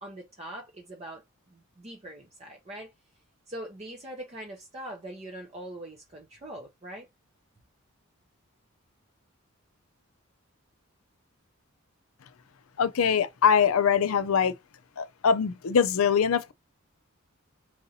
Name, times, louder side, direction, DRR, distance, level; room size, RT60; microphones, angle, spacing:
voice 1, 0.0-1.2 1.5-2.9 3.5-7.1, right 1 dB, 30° right, 0.7 m, -42 dB
voice 2, 12.8-14.5 15.0-16.5, left 7 dB, 75° left, 0.5 m, -23 dB
4.7 x 2.7 x 2.7 m
head